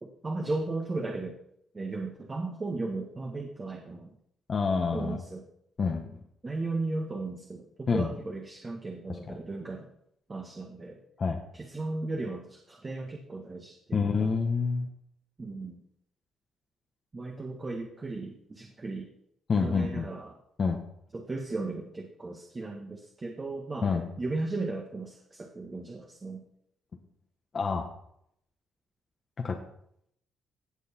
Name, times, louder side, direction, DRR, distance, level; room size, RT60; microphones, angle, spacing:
voice 1, 0.0-1.4 1.7-4.1 4.9-5.4 6.4-9.9 10.3-11.0 11.5-14.3 15.4-15.8 17.1-19.1 19.6-20.4 21.1-26.4, right 3 dB, 30° right, 1 dB, 1.7 m, -36 dB
voice 2, 4.5-5.2 5.8-6.2 7.9-8.1 9.3-9.4 11.2-11.4 13.9-14.9 19.5-20.1 20.6-20.8 23.8-24.0 27.5-27.8 29.4-29.6, left 5 dB, 45° left, 2 dB, 1.3 m, -27 dB
17.5 x 6.5 x 4.5 m, 0.72 s
cardioid pair, 90°, 0 cm